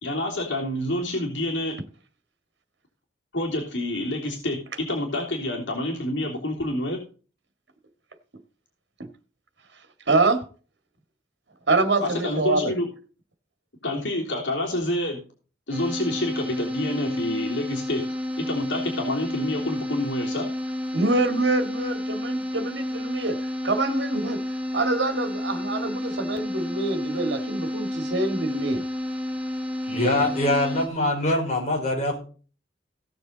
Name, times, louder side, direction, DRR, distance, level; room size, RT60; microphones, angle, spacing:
voice 1, 0.0-1.7 3.3-7.0 12.0-12.9 13.8-15.2 15.7-18.0 18.4-20.5 29.9-30.2, left 1 dB, 85° left, -1 dB, 3.4 m, -28 dB
voice 2, 10.1-10.4 11.7-12.7 20.9-23.4 23.6-24.4 24.7-28.8, right 2 dB, 70° right, 7 dB, 2.0 m, -25 dB
sound 1, 15.7-30.9, left 1 dB, 5° right, 1.5 m, -30 dB
voice 3, 29.9-32.2, left 1 dB, 40° left, 0 dB, 4.7 m, -23 dB
17.0 x 6.9 x 4.0 m, 0.38 s
head